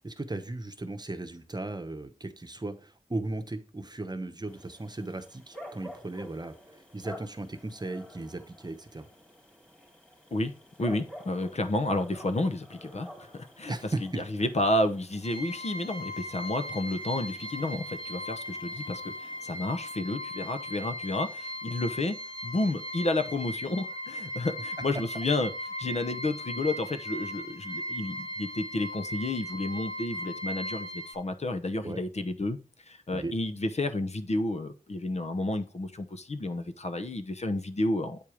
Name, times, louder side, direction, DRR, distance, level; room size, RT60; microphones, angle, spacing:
voice 1, 0.0-9.1 13.7-14.5 31.8-32.0 33.1-33.3, right 2 dB, 30° right, 0.9 m, -36 dB
sound 1, 4.5-19.9, left 1 dB, 5° left, 2.8 m, -50 dB
voice 2, 10.8-13.8 14.2-22.2 22.4-25.5 25.8-32.6 32.9-38.2, left 2 dB, 50° left, 0.9 m, -31 dB
sound 2, 15.2-31.1, equal, 35° left, 2.1 m, -38 dB
8.6 x 4.5 x 4.9 m
wide cardioid pair, 75°, 14 cm